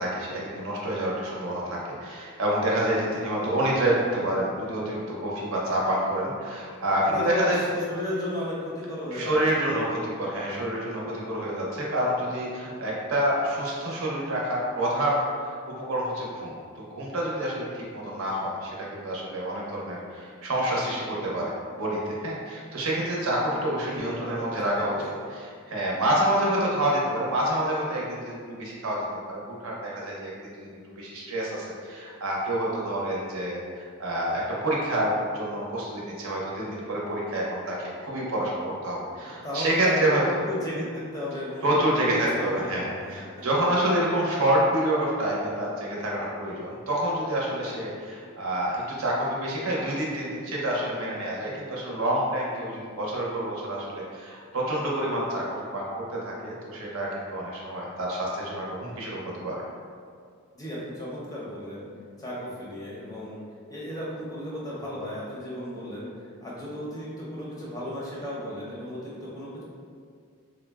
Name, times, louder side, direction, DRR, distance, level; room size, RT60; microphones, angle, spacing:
voice 1, 0.0-7.6 9.1-24.9 25.3-40.2 41.6-59.6, right 1 dB, 70° right, -4 dB, 0.6 m, -28 dB
voice 2, 7.0-9.8 23.9-24.9 39.2-40.2 40.5-41.8 42.1-43.4 60.5-61.8 62.2-63.4 63.7-66.1 66.4-69.6, left 1 dB, 15° left, -6 dB, 0.5 m, -35 dB
3.7 x 2.0 x 2.2 m, 2.2 s
head